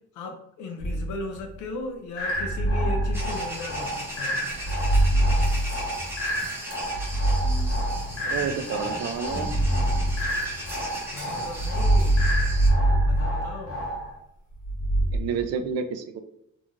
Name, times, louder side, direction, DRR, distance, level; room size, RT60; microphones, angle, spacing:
voice 1, 0.1-4.5 11.1-12.4 13.0-13.9, left 2 dB, 75° left, 0.5 m, -37 dB
sound 1, 0.8-1.5 2.3-3.9 4.5-6.3 6.8-8.4 9.2-10.9 11.5-14.0 14.6-15.2, right 1 dB, 25° left, 0.7 m, -24 dB
sound 2, 2.2-14.2, equal, 50° left, 1.1 m, -33 dB
sound 3, 3.1-12.7, right 1 dB, 10° right, 0.9 m, -38 dB
voice 2, 8.2-9.5 15.1-16.2, right 6 dB, 60° right, 0.4 m, -30 dB
2.6 x 2.3 x 2.9 m
cardioid pair, 90°, 30 cm